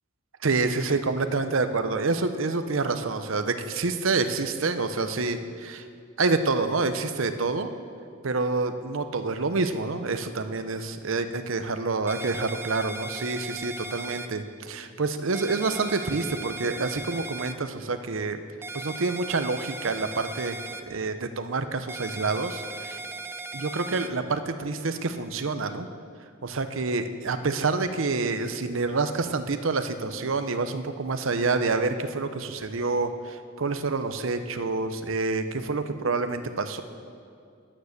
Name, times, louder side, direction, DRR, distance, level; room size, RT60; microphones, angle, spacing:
voice 1, 0.4-5.8 6.2-7.7 8.2-18.4 18.7-23.0 23.5-25.9 26.4-36.8, right 3 dB, 70° right, 9 dB, 0.8 m, -27 dB
sound 1, 12.1-14.3 15.3-17.5 18.6-20.8 21.9-24.1, right 3 dB, 10° right, 0.5 m, -37 dB
13.0 x 9.7 x 6.6 m, 2.3 s
head